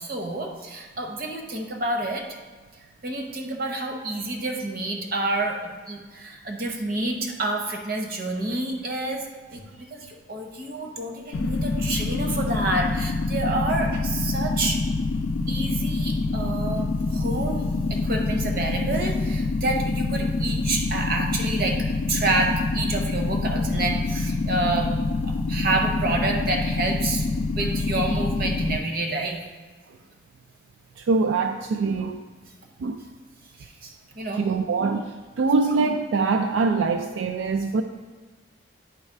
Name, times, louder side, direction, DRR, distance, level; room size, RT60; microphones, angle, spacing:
voice 1, 0.0-2.3 3.0-14.8 15.5-24.9 25.3-29.4 33.6-34.4, right 2 dB, 50° right, 2 dB, 0.9 m, -28 dB
sound 1, 11.3-28.8, left 3 dB, 85° left, 0.4 m, -26 dB
voice 2, 31.0-32.2 32.8-33.0 34.4-37.8, right 4 dB, 75° right, 5 dB, 0.3 m, -23 dB
9.4 x 3.2 x 4.5 m, 1.4 s
head